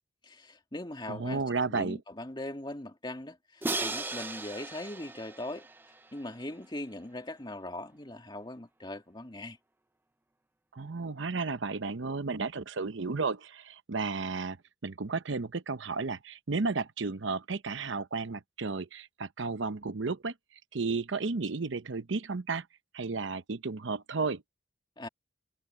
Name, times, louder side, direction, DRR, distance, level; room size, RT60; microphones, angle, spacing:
voice 1, 0.2-1.4 1.7-5.7 6.1-9.6 25.0-25.1, left 1 dB, 25° left, 2.2 m, -40 dB
voice 2, 1.1-2.0 10.7-14.6 14.8-20.3 20.7-22.7 22.9-24.4, right 4 dB, 70° right, 0.8 m, -33 dB
Crash cymbal, 3.6-6.6, right 2 dB, 10° right, 0.7 m, -37 dB
head